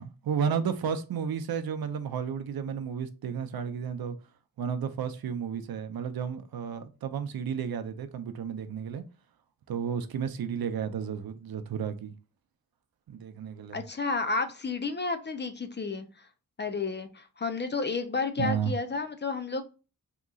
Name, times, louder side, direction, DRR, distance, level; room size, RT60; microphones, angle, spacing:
voice 1, 0.0-4.2 4.6-9.0 9.7-12.1 13.1-13.8 18.4-18.7, right 7 dB, 75° right, 0.5 m, -32 dB
voice 2, 13.7-16.0 16.6-19.6, left 4 dB, 30° left, 0.4 m, -31 dB
3.7 x 2.9 x 2.3 m
wide cardioid pair, 110°, 36 cm